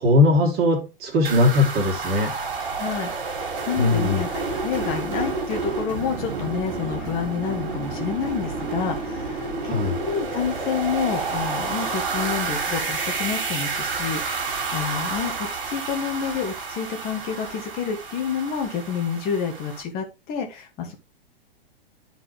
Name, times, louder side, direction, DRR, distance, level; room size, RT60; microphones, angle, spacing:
voice 1, 0.0-2.3 3.8-4.2 9.6-9.9, left 2 dB, 30° right, 2.4 m, -20 dB
sound 1, 1.2-19.8, right 4 dB, 55° right, 2.4 m, -30 dB
voice 2, 2.8-20.9, left 7 dB, 30° left, 1.7 m, -29 dB
11.0 x 4.0 x 3.2 m
figure-of-eight pair, 105°, 30 cm